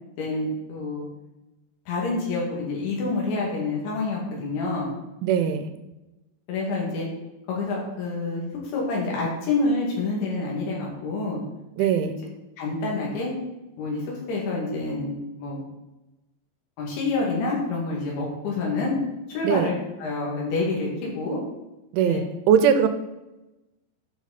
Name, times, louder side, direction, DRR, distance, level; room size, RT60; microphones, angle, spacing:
voice 1, 0.2-1.1 1.9-4.9 6.5-7.1 7.5-11.4 12.1-12.2 12.6-13.3 13.8-15.6 16.8-18.9 19.3-19.7 20.0-21.4 22.0-22.2, left 3 dB, 75° left, -3 dB, 4.4 m, -27 dB
voice 2, 5.2-5.7 11.8-12.2 19.4-19.7 21.9-22.9, right 8 dB, 85° right, 9 dB, 3.1 m, -21 dB
9.5 x 6.2 x 4.1 m, 1.0 s
omnidirectional pair, 5.4 m